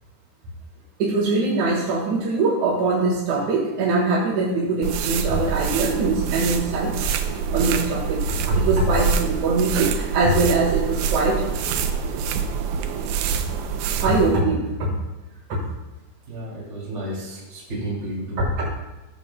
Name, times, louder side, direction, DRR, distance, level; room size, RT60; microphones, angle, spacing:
voice 1, 1.0-7.1 7.5-11.5 14.0-14.9 15.5-15.6 18.6-18.7, right 3 dB, 70° right, -7 dB, 2.9 m, -22 dB
sound 1, 4.8-14.4, right 6 dB, 85° right, 2.1 m, -25 dB
voice 2, 16.3-18.4, right 1 dB, 20° right, -5 dB, 2.7 m, -32 dB
14.0 x 6.6 x 2.2 m, 1.1 s
omnidirectional pair, 3.5 m